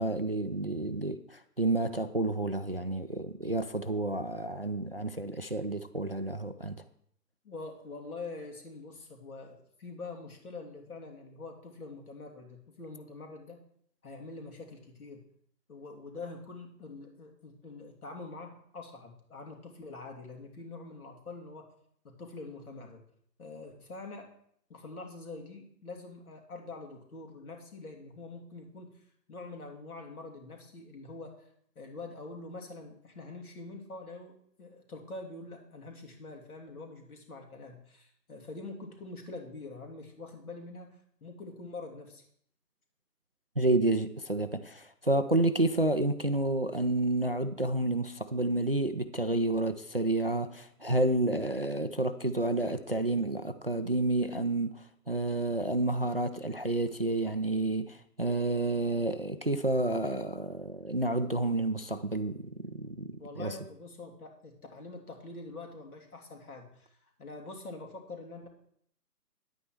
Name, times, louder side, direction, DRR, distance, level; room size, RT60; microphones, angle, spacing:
voice 1, 0.0-6.8 43.6-63.6, right 2 dB, 40° right, 0.4 m, -30 dB
voice 2, 7.4-13.6 14.0-15.2 15.7-21.7 22.0-23.0 23.4-24.3 24.7-29.0 29.3-31.5 31.7-42.2 63.2-68.5, left 3 dB, 60° left, 2.9 m, -45 dB
10.0 x 8.7 x 4.6 m
figure-of-eight pair, 150°, 49 cm